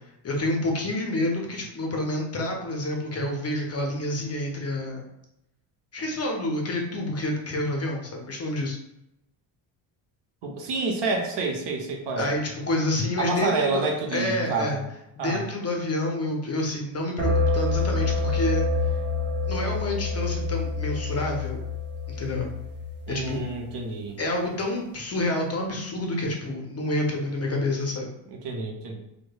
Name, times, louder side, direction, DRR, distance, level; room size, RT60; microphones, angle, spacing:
voice 1, 0.2-5.0 5.9-8.8 12.2-13.8 14.1-14.8 15.2-18.6 19.5-21.6 22.1-22.5 23.1-23.4 24.2-28.1, left 1 dB, 30° left, 1 dB, 0.6 m, -28 dB
voice 2, 10.4-12.3 13.2-14.9 15.2-15.5 23.1-24.2 28.3-29.0, right 3 dB, 55° right, 2 dB, 0.8 m, -28 dB
sound 1, 17.2-23.7, left 3 dB, 20° right, 0.6 m, -27 dB
3.0 x 2.1 x 2.2 m, 0.85 s
supercardioid pair, 75°, 50 cm